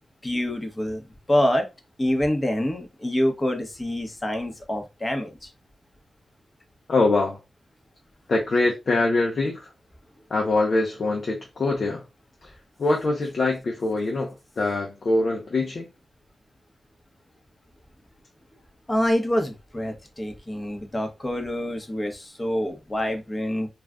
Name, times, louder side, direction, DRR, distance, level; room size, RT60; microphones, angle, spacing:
voice 1, 0.2-1.6 2.0-5.5 18.9-23.7, left 1 dB, 25° left, 1.0 m, -26 dB
voice 2, 6.9-7.4 8.3-9.7 10.3-12.0 12.8-15.9, left 2 dB, 55° left, 0.8 m, -23 dB
2.5 x 2.4 x 3.4 m
cardioid pair, 60°, 0 cm